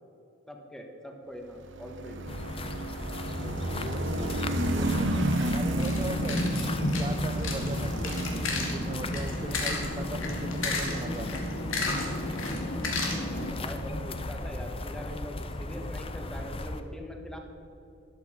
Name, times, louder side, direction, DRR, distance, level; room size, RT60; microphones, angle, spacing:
voice 1, 0.5-2.4 13.5-17.4, equal, 5° left, 2 dB, 1.4 m, -42 dB
sound 1, 1.5-14.7, right 1 dB, 65° right, 1.0 m, -34 dB
sound 2, 2.3-16.8, left 2 dB, 30° left, 0.6 m, -36 dB
voice 2, 3.6-4.3 4.6-5.1 5.4-6.5 7.0-11.4 13.9-14.0, right 2 dB, 25° right, 7 dB, 0.4 m, -39 dB
sound 3, 5.7-13.5, left 2 dB, 90° left, 2.4 m, -32 dB
13.0 x 11.5 x 4.9 m, 2.9 s
head